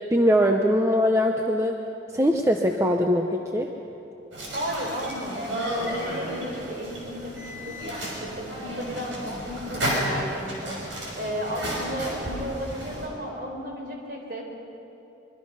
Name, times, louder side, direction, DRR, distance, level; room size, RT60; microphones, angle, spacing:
voice 1, 0.1-1.8 2.1-3.7, equal, 15° right, 3 dB, 0.7 m, -21 dB
sound 1, 4.3-13.1, equal, 75° right, 6.2 m, -32 dB
voice 2, 4.5-14.4, equal, 50° right, 0 dB, 4.2 m, -34 dB
24.5 x 22.5 x 5.6 m, 3.0 s
head